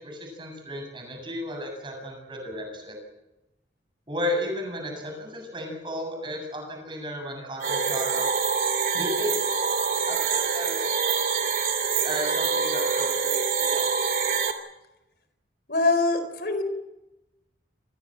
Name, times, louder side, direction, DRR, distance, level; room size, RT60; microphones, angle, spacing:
voice 1, 0.0-3.0 4.1-8.3 8.9-9.7 10.1-11.0 12.0-13.9, equal, 25° right, 3 dB, 7.6 m, -34 dB
sound 1, 7.6-14.5, right 5 dB, 50° right, 2.9 m, -25 dB
voice 2, 15.7-16.6, left 3 dB, 55° left, 9 dB, 4.4 m, -23 dB
27.0 x 20.5 x 7.7 m, 0.97 s
head